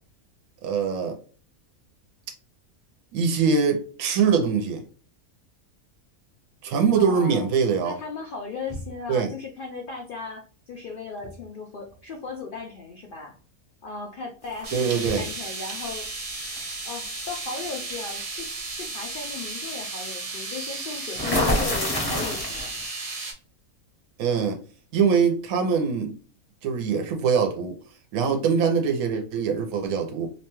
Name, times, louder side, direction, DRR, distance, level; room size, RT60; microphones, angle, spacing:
voice 1, 0.6-1.2 3.1-4.8 6.6-8.0 9.1-9.3 14.7-15.2 24.2-24.6 24.9-26.1 26.6-27.7 28.1-30.3, right 6 dB, 90° right, 1.1 m, -23 dB
voice 2, 6.9-7.5 7.8-13.4 13.8-16.1 16.8-22.8, left 4 dB, 75° left, 0.5 m, -37 dB
sound 1, 8.6-9.2 11.0-11.5 11.8-12.8 13.0-13.5 14.1-15.6, equal, 35° right, 0.6 m, -41 dB
sound 2, 14.5-15.1 16.5-16.7 17.2-17.4 21.1-22.8, left 1 dB, 25° left, 0.5 m, -26 dB
sound 3, 14.6-23.3, right 3 dB, 55° right, 1.1 m, -34 dB
2.8 x 2.2 x 2.9 m
omnidirectional pair, 1.5 m